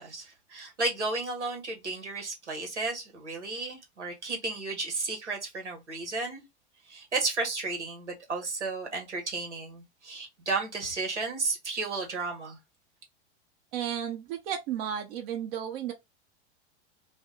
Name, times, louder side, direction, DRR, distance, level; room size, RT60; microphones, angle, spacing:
voice 1, 0.0-6.4 6.9-12.6, right 3 dB, 90° right, 1.3 m, -33 dB
voice 2, 13.7-15.9, right 9 dB, 55° right, 0.8 m, -33 dB
2.6 x 2.3 x 3.7 m
hypercardioid pair, 95°, 34 cm